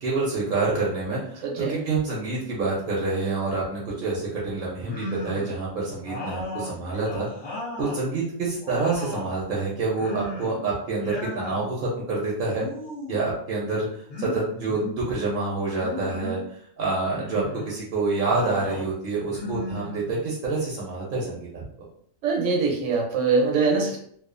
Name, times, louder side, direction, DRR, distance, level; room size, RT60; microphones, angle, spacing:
voice 1, 0.0-7.3 7.8-12.6 13.1-21.6, right 3 dB, 55° right, -4 dB, 0.7 m, -27 dB
voice 2, 1.4-1.8 22.2-24.0, right 4 dB, 75° right, 1 dB, 1.0 m, -23 dB
sound 1, 4.8-5.6 6.0-8.0 8.4-9.4 9.9-10.6 10.9-11.6 12.5-13.3 14.1-15.0 15.7-16.5 17.1-17.7 18.3-18.9 19.3-20.4, left 2 dB, 45° left, 0.3 m, -35 dB
2.4 x 2.3 x 2.5 m, 0.63 s
omnidirectional pair, 1.4 m